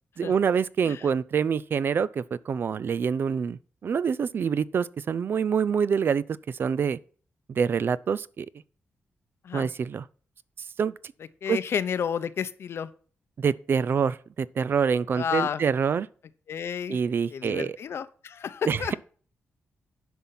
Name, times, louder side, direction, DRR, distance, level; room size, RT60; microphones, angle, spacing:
voice 1, 0.2-7.0 7.5-8.5 9.5-10.1 10.8-10.9 11.5-11.6 13.4-16.1 16.9-17.8 18.7-18.9, right 6 dB, 50° right, 0.4 m, -26 dB
voice 2, 11.4-12.9 15.1-15.6 16.5-17.0 17.3-18.9, left 7 dB, 65° left, 0.7 m, -31 dB
10.5 x 5.5 x 5.8 m
wide cardioid pair, 130°, 5 cm